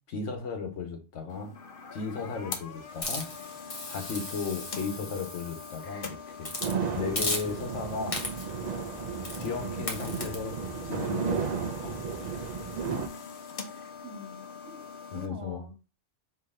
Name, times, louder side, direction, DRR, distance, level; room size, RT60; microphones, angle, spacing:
voice 1, 0.1-1.5 1.9-3.3 3.9-6.5 6.9-8.2 9.4-10.6 10.8-12.0 15.1-15.6, left 5 dB, 75° left, 1.3 m, -35 dB
sound 1, 1.3-15.3, left 5 dB, 55° left, 0.8 m, -43 dB
Hiss, 3.0-5.9 6.4-6.8 7.2-7.8 8.1-8.6 9.2-9.5 9.9-10.4, left 2 dB, 30° left, 0.9 m, -36 dB
sound 2, 6.6-13.1, right 6 dB, 45° right, 0.6 m, -34 dB
voice 2, 12.7-13.3 14.0-14.8 15.1-15.9, equal, 85° right, 1.3 m, -45 dB
4.7 x 2.9 x 3.5 m
omnidirectional pair, 1.2 m